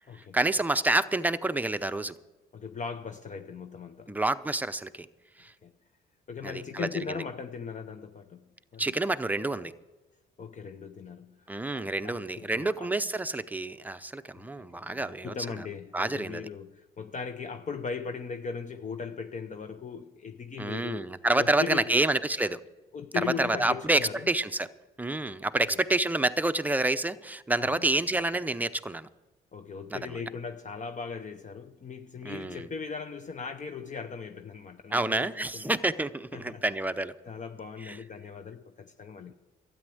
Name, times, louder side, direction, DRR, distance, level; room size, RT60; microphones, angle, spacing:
voice 1, 0.1-2.1 4.1-5.1 5.4-5.5 6.4-7.2 8.8-9.7 11.5-15.6 15.9-16.4 20.6-22.6 23.1-24.7 25.0-29.1 29.9-30.2 32.2-32.7 34.9-37.2 37.8-38.0, right 2 dB, 10° right, 0.6 m, -28 dB
voice 2, 2.5-4.2 5.6-5.7 6.3-8.4 8.7-8.8 10.4-12.9 14.6-22.0 22.9-24.3 25.7-25.8 27.6-27.9 29.5-35.8 36.3-36.6 37.3-39.3, left 6 dB, 40° left, 0.7 m, -39 dB
13.0 x 9.2 x 7.8 m
cardioid pair, 90°, 20 cm